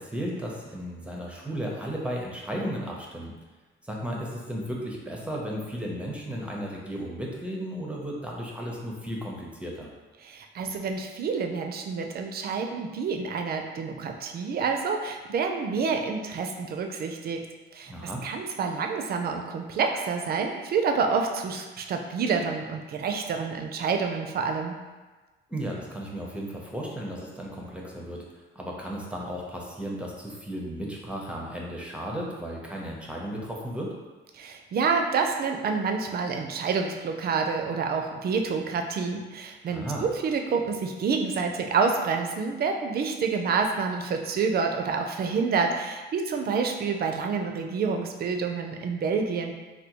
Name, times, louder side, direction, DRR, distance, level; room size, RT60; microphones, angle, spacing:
voice 1, 0.0-3.3 3.8-9.9 17.9-18.2 25.5-28.2 28.5-34.0 39.7-40.1, equal, 5° right, -2 dB, 0.6 m, -34 dB
voice 2, 10.2-17.4 17.7-17.9 18.2-24.7 34.3-49.5, right 5 dB, 50° right, 4 dB, 0.4 m, -28 dB
3.4 x 2.3 x 2.9 m, 1.3 s
cardioid pair, 90°, 20 cm